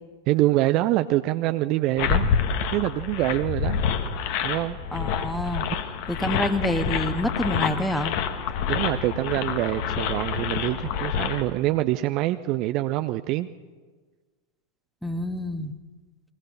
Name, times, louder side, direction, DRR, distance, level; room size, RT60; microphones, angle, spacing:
voice 1, 0.3-2.3 2.7-3.8 4.4-4.8 8.7-13.5, right 16 dB, 40° right, 11 dB, 0.7 m, -25 dB
sound 1, 2.0-11.4, left 7 dB, 45° left, 1.8 m, -27 dB
voice 2, 4.9-5.7 6.1-8.1 15.0-15.7, equal, ahead, 9 dB, 1.6 m, -27 dB
22.5 x 19.5 x 6.8 m, 1.4 s
figure-of-eight pair, 90°, 0 cm